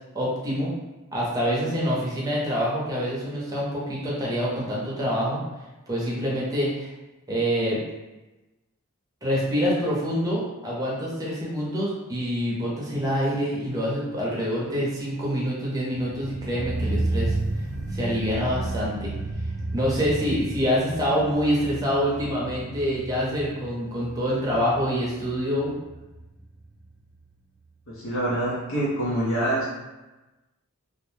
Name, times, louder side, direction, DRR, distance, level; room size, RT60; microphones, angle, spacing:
voice 1, 0.1-0.7 1.1-5.4 5.9-6.9 7.3-7.8 9.2-17.4 17.9-19.1 19.7-25.7, equal, 15° right, -5 dB, 0.6 m, -26 dB
sound 1, 16.0-26.9 27.2-27.3, right 2 dB, 80° right, 0.6 m, -32 dB
voice 2, 27.9-29.8, right 1 dB, 70° left, -8 dB, 0.7 m, -26 dB
2.4 x 2.1 x 3.1 m, 1.1 s
head